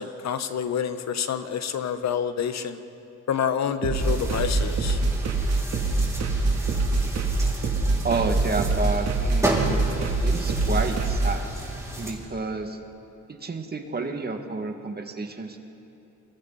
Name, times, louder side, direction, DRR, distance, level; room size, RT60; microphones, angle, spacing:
voice 1, 0.0-2.8 3.3-5.0, left 7 dB, 60° left, 10 dB, 1.3 m, -28 dB
sound 1, 3.8-11.3, right 3 dB, 60° right, 3.1 m, -24 dB
sound 2, 3.9-12.1, right 1 dB, 10° right, 5.7 m, -33 dB
voice 2, 8.0-9.8 10.2-11.4 12.0-12.8 13.3-15.6, right 3 dB, 30° right, 4 dB, 2.4 m, -30 dB
29.5 x 24.0 x 4.3 m, 2.8 s
cardioid pair, 90°, 30 cm